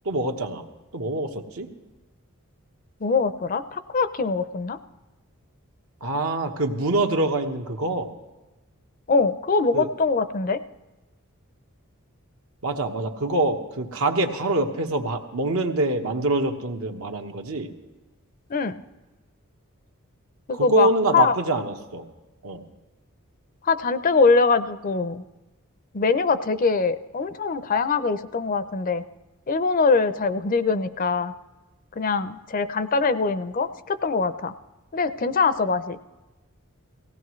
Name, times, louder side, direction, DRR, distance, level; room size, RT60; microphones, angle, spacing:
voice 1, 0.0-0.6 0.9-1.7 6.0-8.1 9.7-9.9 12.6-17.7 20.5-22.1 22.4-22.6, right 2 dB, 80° right, 4 dB, 1.2 m, -25 dB
voice 2, 3.0-4.8 9.1-10.6 18.5-18.7 20.5-20.9 21.1-21.3 23.6-25.2 25.9-29.0 29.5-31.3 32.0-34.5 34.9-36.0, left 4 dB, 40° left, 12 dB, 0.5 m, -23 dB
18.5 x 16.5 x 3.1 m, 1.1 s
head